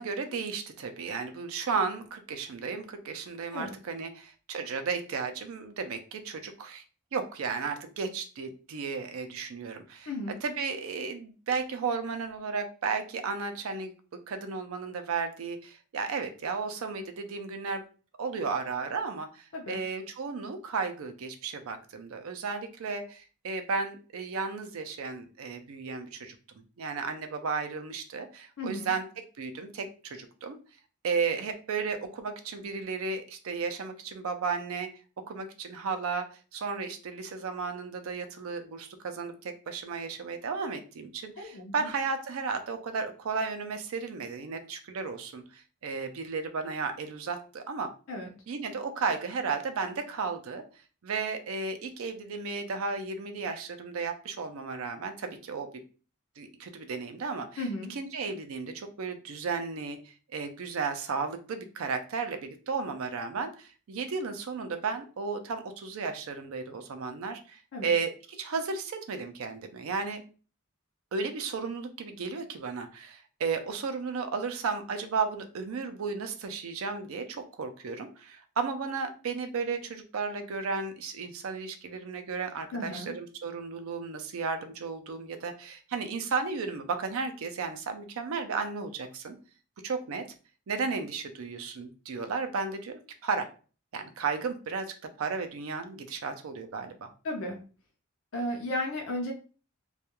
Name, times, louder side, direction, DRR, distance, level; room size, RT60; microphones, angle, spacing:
voice 1, 0.0-6.8 7.1-10.1 10.4-17.8 18.2-26.4 26.8-29.0 29.4-30.6 31.0-34.9 35.3-47.9 48.5-50.6 51.0-55.7 56.4-70.2 71.1-89.4 89.8-90.3 90.7-93.5 93.9-97.1, right 5 dB, 75° right, 7 dB, 0.4 m, -34 dB
voice 2, 10.1-10.4 19.5-19.8 28.6-28.9 41.4-41.9 48.1-48.3 57.6-57.9 67.7-67.9 82.7-83.1 97.2-97.6 98.3-99.3, left 1 dB, 65° left, 0 dB, 0.5 m, -34 dB
2.3 x 2.2 x 2.9 m, 0.37 s
head